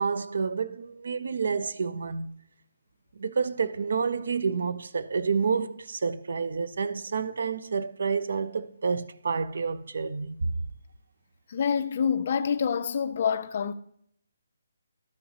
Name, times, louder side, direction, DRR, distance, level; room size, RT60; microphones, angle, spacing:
voice 1, 0.0-2.3 3.2-10.5, right 5 dB, 65° right, 0.4 m, -29 dB
voice 2, 11.5-13.7, left 7 dB, 40° left, 0.4 m, -27 dB
12.5 x 5.6 x 2.8 m
hypercardioid pair, 170°, 0 cm